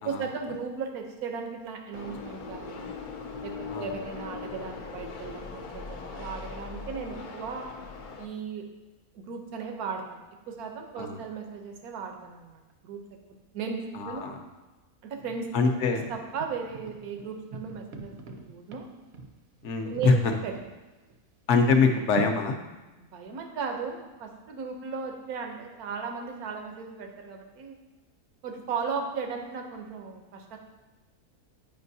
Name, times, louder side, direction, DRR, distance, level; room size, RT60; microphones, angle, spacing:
voice 1, 0.0-2.9 3.4-7.7 8.2-8.6 9.1-13.0 13.5-14.3 15.0-15.7 16.1-18.9 19.8-20.5 23.0-27.8 28.4-30.6, right 5 dB, 85° right, 3 dB, 1.3 m, -36 dB
sound 1, 1.9-8.3, left 4 dB, 85° left, 0.4 m, -40 dB
voice 2, 13.9-14.4 15.5-16.1 19.6-20.3 21.5-22.6, left 4 dB, 60° left, 4 dB, 0.9 m, -24 dB
sound 2, 15.2-15.6 16.0-20.7 21.1-21.2 21.8-22.4, right 3 dB, 60° right, 0.8 m, -40 dB
9.0 x 5.1 x 2.7 m, 1.1 s
omnidirectional pair, 1.5 m